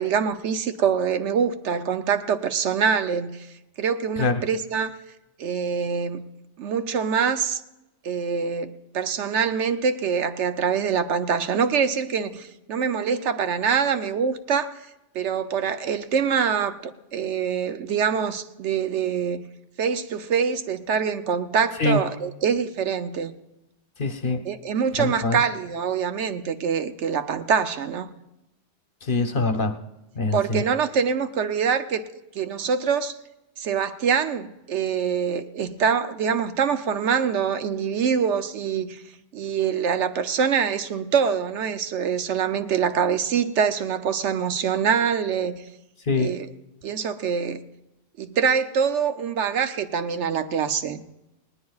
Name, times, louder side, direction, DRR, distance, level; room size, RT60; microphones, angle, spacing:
voice 1, 0.0-3.5 3.8-5.0 5.4-6.2 6.6-7.6 8.0-14.9 15.1-19.4 19.8-23.3 24.4-28.1 30.3-32.0 32.3-33.2 33.6-39.0 39.3-45.6 46.2-46.5 46.8-47.6 48.2-51.0, right 6 dB, 75° right, 1.0 m, -24 dB
voice 2, 24.0-24.4 25.0-25.4 29.0-29.7 30.1-30.6 46.1-46.3, left 3 dB, 50° left, 1.0 m, -23 dB
19.5 x 18.5 x 2.4 m
omnidirectional pair, 1.2 m